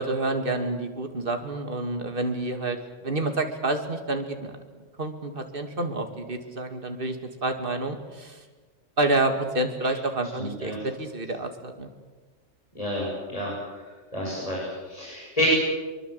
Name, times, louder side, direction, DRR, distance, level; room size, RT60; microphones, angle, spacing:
voice 1, 0.0-2.8 3.0-4.5 5.0-8.4 9.0-11.9, right 2 dB, 45° right, 6 dB, 2.6 m, -28 dB
voice 2, 10.4-10.8 12.8-13.5 14.1-15.5, left 1 dB, 30° left, -5 dB, 7.6 m, -30 dB
25.5 x 23.5 x 8.3 m, 1.3 s
omnidirectional pair, 1.3 m